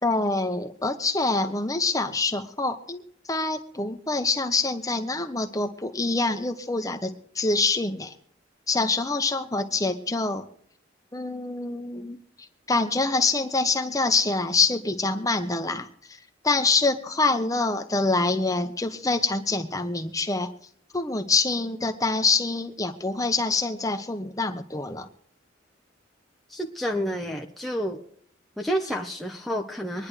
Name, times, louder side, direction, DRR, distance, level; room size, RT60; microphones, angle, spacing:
voice 1, 0.0-3.0 3.3-8.1 8.7-10.4 11.1-12.2 12.7-15.9 16.4-20.5 20.9-25.1, left 3 dB, 20° left, 7 dB, 1.0 m, -25 dB
voice 2, 26.5-28.0 28.6-30.1, equal, ahead, -1 dB, 0.9 m, -29 dB
24.5 x 10.5 x 3.3 m, 0.63 s
head